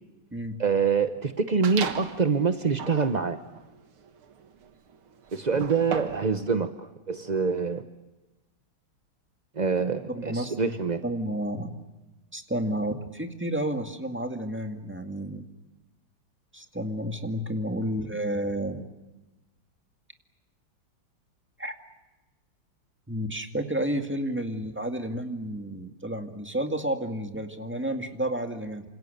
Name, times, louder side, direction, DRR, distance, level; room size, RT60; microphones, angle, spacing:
voice 1, 0.6-3.4 5.3-7.8 9.6-11.0, right 5 dB, 50° right, 9 dB, 0.5 m, -25 dB
sound 1, 1.6-2.2 2.7-6.3, right 7 dB, 80° right, 2.4 m, -36 dB
voice 2, 10.1-10.8 11.0-11.8 12.3-15.4 16.5-18.8 21.6-21.7 23.1-28.8, right 1 dB, 5° right, 5 dB, 1.9 m, -31 dB
28.5 x 26.5 x 6.8 m, 1.1 s
omnidirectional pair, 2.3 m